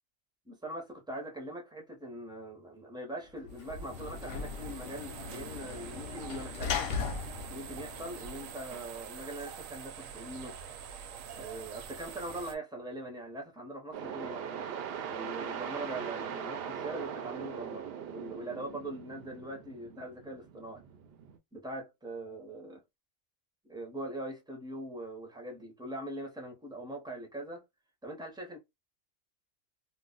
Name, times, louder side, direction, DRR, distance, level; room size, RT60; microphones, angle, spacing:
voice 1, 0.5-6.9 7.5-10.6 11.3-14.7 15.1-20.8 21.5-22.8 23.6-27.6 28.0-28.6, right 1 dB, 5° right, 0.5 m, -42 dB
Sliding door / Slam, 3.4-8.8, left 5 dB, 60° left, 0.7 m, -38 dB
sound 1, 3.5-12.6, right 7 dB, 85° right, 1.0 m, -46 dB
sound 2, 13.9-21.4, right 8 dB, 65° right, 0.6 m, -40 dB
2.3 x 2.1 x 3.8 m
omnidirectional pair, 1.3 m